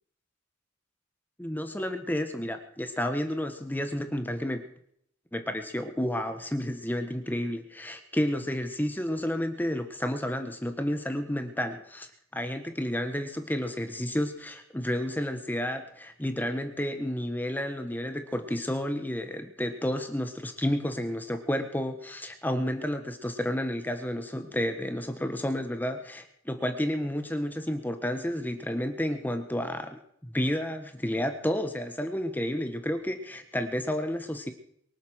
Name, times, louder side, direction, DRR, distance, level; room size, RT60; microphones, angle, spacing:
voice 1, 1.4-4.7 5.3-34.5, equal, 10° left, 7 dB, 1.3 m, -31 dB
23.5 x 8.2 x 6.3 m, 0.67 s
head